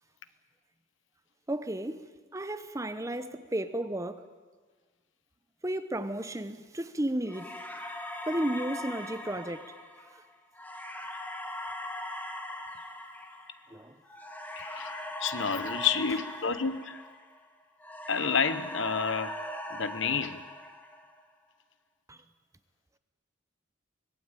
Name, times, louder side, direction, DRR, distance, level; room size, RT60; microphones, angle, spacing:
voice 1, 1.5-2.0 2.3-4.2 5.6-7.5 8.3-9.6 13.7-13.9 22.1-22.2, right 1 dB, 15° right, 1.0 m, -33 dB
sound 1, 7.3-17.5 17.8-21.2, left 1 dB, 10° left, 1.8 m, -40 dB
voice 2, 14.6-17.0 18.1-19.4 19.7-20.4, left 6 dB, 65° left, 1.1 m, -30 dB
24.5 x 18.5 x 9.1 m
head